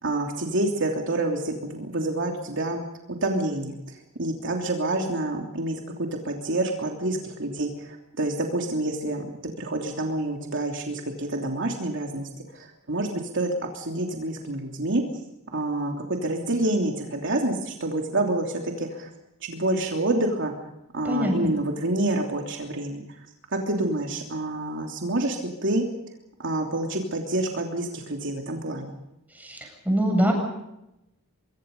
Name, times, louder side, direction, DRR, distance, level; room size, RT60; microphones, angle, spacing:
voice 1, 0.0-2.8 3.2-12.3 12.5-15.0 15.5-19.1 19.4-20.5 20.9-23.0 23.5-25.8 26.4-28.9, right 2 dB, 60° right, 2 dB, 3.1 m, -28 dB
voice 2, 21.0-21.5 29.4-30.3, equal, 5° right, 1 dB, 7.9 m, -24 dB
25.0 x 23.5 x 5.5 m, 0.87 s
head